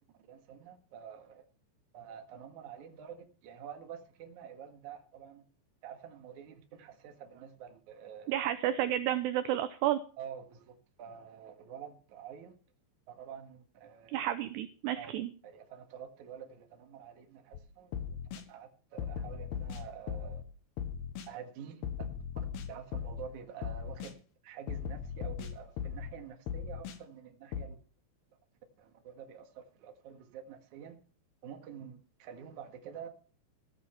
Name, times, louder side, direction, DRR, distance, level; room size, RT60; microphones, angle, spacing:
voice 1, 0.3-1.5 1.9-5.4 5.8-8.4 10.2-12.5 13.1-14.2 14.9-15.1 15.4-18.2 18.5-20.4 21.3-21.8 22.7-27.8 28.8-31.0 31.4-33.1, right 8 dB, 55° right, 2.5 m, -48 dB
voice 2, 8.3-10.0 14.1-15.3, right 12 dB, 75° right, 2.6 m, -31 dB
sound 1, 17.5-17.6 17.9-18.4 19.0-20.4 20.8-21.3 21.8-23.3 23.6-24.1 24.7-26.1 26.5-27.0 27.5-27.7, left 8 dB, 65° left, 3.1 m, -38 dB
15.0 x 8.7 x 5.7 m
omnidirectional pair, 5.4 m